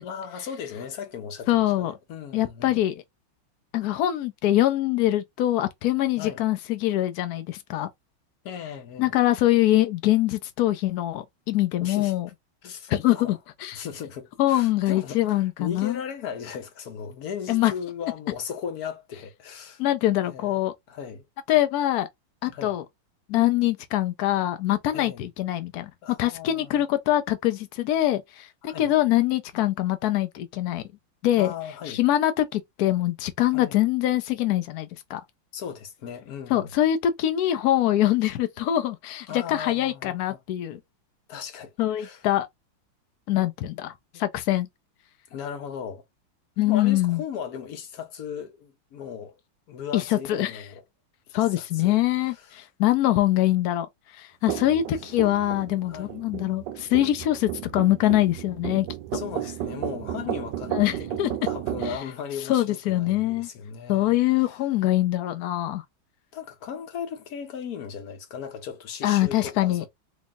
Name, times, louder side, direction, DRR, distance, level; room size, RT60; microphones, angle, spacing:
voice 1, 0.0-2.8 6.2-6.4 8.4-9.1 11.8-12.2 12.6-13.4 13.7-19.8 20.3-20.6 20.9-21.2 22.4-22.7 24.9-25.3 26.0-26.8 28.6-28.9 31.3-32.0 33.5-33.8 35.5-36.7 39.3-40.4 41.3-41.7 42.0-42.3 44.1-44.2 45.3-46.0 46.6-49.3 49.7-50.8 51.4-52.0 52.3-52.6 55.9-56.2 59.1-60.7 61.0-64.2 66.3-69.9, left 7 dB, 55° left, 1.1 m, -37 dB
voice 2, 1.5-2.0 2.3-2.9 3.7-7.9 9.0-12.3 12.9-13.8 14.4-16.0 17.5-17.7 19.8-20.7 21.5-22.1 22.4-22.8 23.3-30.8 31.2-31.5 31.9-35.2 36.5-40.8 41.8-42.5 43.3-44.7 46.6-47.2 49.9-50.6 51.3-53.9 54.2-58.9 60.7-61.3 62.5-63.5 63.9-65.8 69.0-69.8, left 14 dB, 90° left, 0.8 m, -24 dB
sound 1, 54.5-62.0, right 12 dB, 70° right, 1.1 m, -33 dB
3.1 x 3.1 x 3.5 m
omnidirectional pair, 2.3 m